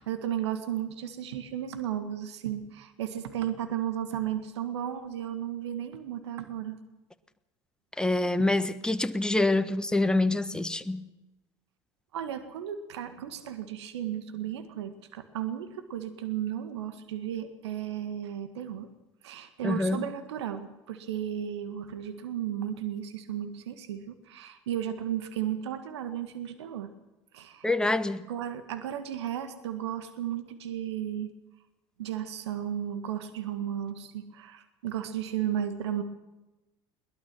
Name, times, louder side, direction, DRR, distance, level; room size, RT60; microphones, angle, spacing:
voice 1, 0.0-6.8 12.1-18.9 19.2-26.9 27.3-27.7 28.3-31.3 32.0-36.0, right 10 dB, 70° right, 1.8 m, -34 dB
voice 2, 8.0-11.1 19.6-20.0 27.6-28.3, left 2 dB, 5° left, 1.4 m, -26 dB
22.0 x 20.0 x 6.1 m
figure-of-eight pair, 65°, 15 cm